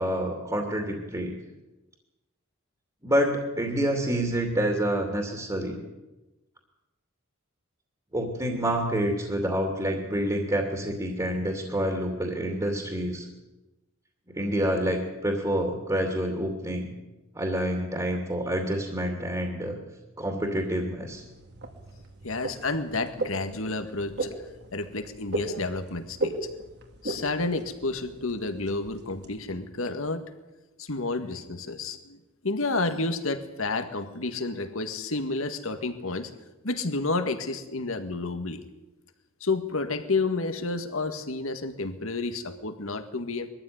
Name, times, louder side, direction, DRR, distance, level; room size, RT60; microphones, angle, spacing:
voice 1, 0.0-1.4 3.0-5.8 8.1-13.3 14.3-16.9 17.3-19.8 20.2-21.2, equal, 20° right, 2 dB, 2.7 m, -28 dB
sound 1, 21.1-29.4, right 2 dB, 55° right, 2.3 m, -37 dB
voice 2, 22.2-24.4 24.7-26.4 27.0-30.2 30.8-32.2 32.4-36.3 36.6-38.7 39.4-43.5, left 3 dB, 75° left, 8 dB, 1.9 m, -30 dB
22.0 x 14.0 x 9.5 m, 1.1 s
head